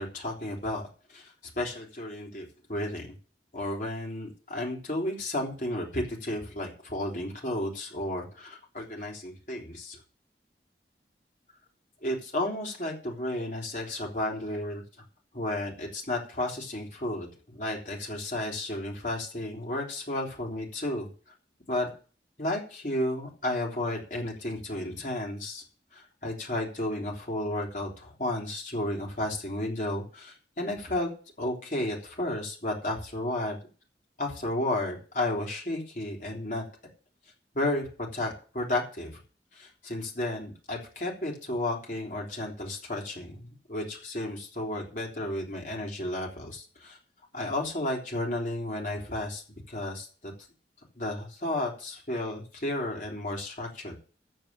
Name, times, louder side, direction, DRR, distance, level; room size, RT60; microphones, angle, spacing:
voice 1, 0.0-3.1 3.5-10.0 12.0-14.8 15.3-21.1 21.7-21.9 22.4-25.6 25.9-31.1 31.4-33.6 34.2-36.6 37.5-39.1 39.5-47.0 47.3-50.3 51.0-54.0, left 1 dB, 45° left, -1 dB, 3.4 m, -33 dB
14.5 x 4.8 x 8.7 m, 0.39 s
head